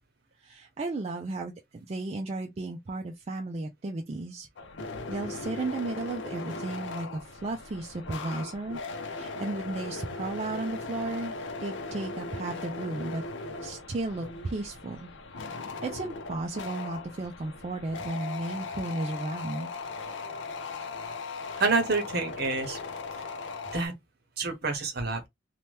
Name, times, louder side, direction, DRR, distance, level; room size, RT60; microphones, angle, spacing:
voice 1, 0.4-1.5 1.9-4.5 5.1-8.8 9.1-11.3 11.6-13.2 13.6-15.1 15.8-19.7, right 2 dB, 35° right, 0.4 m, -34 dB
sound 1, 4.6-23.9, left 3 dB, 65° left, 0.6 m, -38 dB
voice 2, 21.6-22.8 23.7-23.9 24.4-25.3, right 3 dB, 55° right, 0.9 m, -28 dB
2.8 x 2.2 x 3.2 m
head